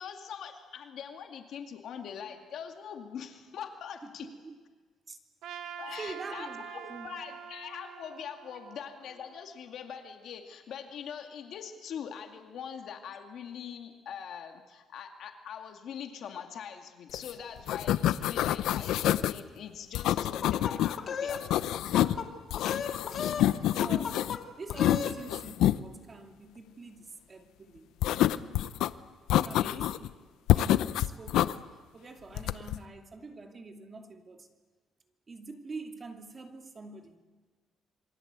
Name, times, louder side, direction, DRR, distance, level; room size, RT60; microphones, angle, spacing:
voice 1, 0.0-4.3 5.8-21.6 29.3-29.9, left 8 dB, 60° left, 2.3 m, -43 dB
voice 2, 4.2-4.6 5.1-5.2 6.0-7.1 23.1-24.2 24.6-28.0 29.3-30.1 30.5-31.6 31.9-34.5 35.3-37.2, right 3 dB, 30° right, 2.6 m, -45 dB
Trumpet, 5.4-9.7, right 8 dB, 80° right, 1.9 m, -45 dB
sound 1, 17.1-17.3 17.6-19.4 20.0-21.0 21.3-22.2 22.5-24.4 24.7-25.8 28.0-28.9 29.3-30.1 30.5-31.5 32.4-32.8, left 13 dB, 85° left, 0.8 m, -27 dB
sound 2, 20.2-21.4 21.7-22.3 22.6-23.5 23.8-24.4 24.7-25.2, left 7 dB, 45° left, 2.8 m, -35 dB
27.5 x 23.5 x 8.3 m
cardioid pair, 130°, 0 cm